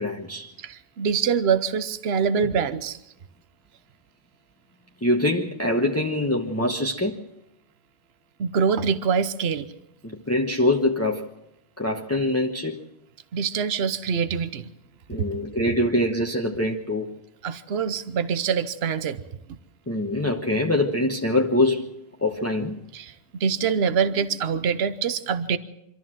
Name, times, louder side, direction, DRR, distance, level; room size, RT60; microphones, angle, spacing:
voice 1, 0.0-0.5 5.0-7.2 10.0-11.3 11.8-12.8 15.1-17.1 19.9-21.9 22.2-22.8, left 1 dB, 15° left, 1.1 m, -24 dB
voice 2, 0.6-3.0 8.4-9.7 13.3-14.7 17.4-19.2 22.9-23.1 23.4-25.6, right 6 dB, 70° right, 1.1 m, -24 dB
26.0 x 13.5 x 7.5 m
omnidirectional pair, 1.1 m